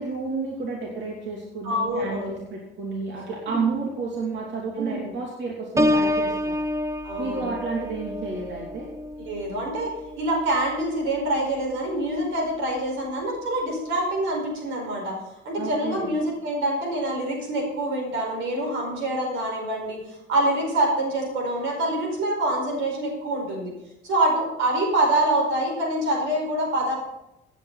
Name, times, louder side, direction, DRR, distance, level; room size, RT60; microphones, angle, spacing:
voice 1, 0.0-6.6 7.2-8.9 15.6-16.1, right 4 dB, 65° right, -3 dB, 2.8 m, -31 dB
voice 2, 1.6-2.4 3.5-3.6 4.8-5.1 7.0-7.5 9.2-15.1 15.4-23.7 24.0-26.9, right 1 dB, 90° right, 0 dB, 4.9 m, -26 dB
Piano, 5.8-11.4 11.9-12.2, left 1 dB, 15° right, 0.8 m, -28 dB
16.0 x 9.2 x 4.1 m, 0.89 s
cardioid pair, 90°, 20 cm